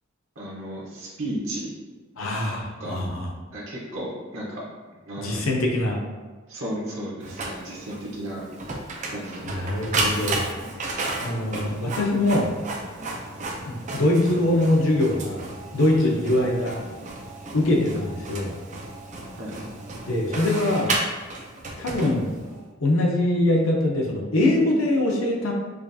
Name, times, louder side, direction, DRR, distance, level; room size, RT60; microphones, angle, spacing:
voice 1, 0.4-1.7 2.8-3.0 3.5-4.6 5.0-5.4 6.5-8.5 9.1-9.6 19.4-19.5, right 1 dB, 85° right, -6 dB, 0.9 m, -34 dB
voice 2, 2.2-3.3 5.2-6.0 9.5-10.5 11.2-12.5 13.7-15.5 15.7-16.8 17.5-18.5 20.1-21.0 21.8-22.3 22.8-25.5, left 1 dB, 85° left, -1 dB, 0.7 m, -23 dB
Printer, 7.2-22.6, right 2 dB, 35° right, 0.5 m, -33 dB
4.9 x 2.4 x 2.6 m, 1.4 s
head